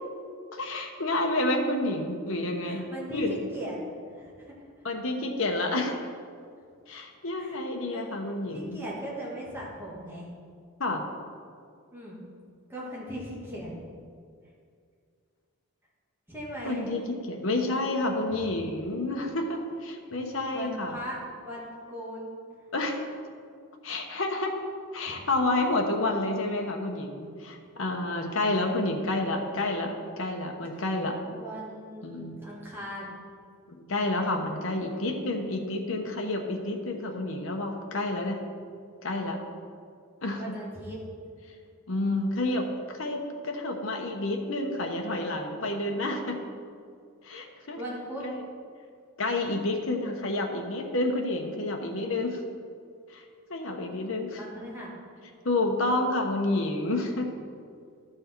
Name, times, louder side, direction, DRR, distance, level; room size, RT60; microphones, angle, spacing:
voice 1, 0.5-2.8 3.1-3.3 4.8-5.9 6.9-8.8 10.8-11.1 16.6-21.0 22.7-23.0 23.8-24.5 24.9-31.2 32.0-32.4 33.7-38.4 39.0-39.4 40.2-40.4 41.9-46.4 47.2-47.8 48.2-48.4 49.2-52.4 53.1-53.2 53.5-54.4 55.4-57.3, left 2 dB, 65° left, 2 dB, 1.1 m, -29 dB
voice 2, 2.6-3.8 4.1-4.8 7.4-7.6 7.9-8.1 8.5-10.3 11.9-12.2 12.7-13.7 16.3-16.9 20.5-22.3 25.1-25.2 25.5-25.6 28.6-28.9 31.3-33.2 40.3-41.0 47.8-48.2 54.4-54.9, equal, 10° right, -7 dB, 2.1 m, -38 dB
12.0 x 6.2 x 4.6 m, 2.2 s
head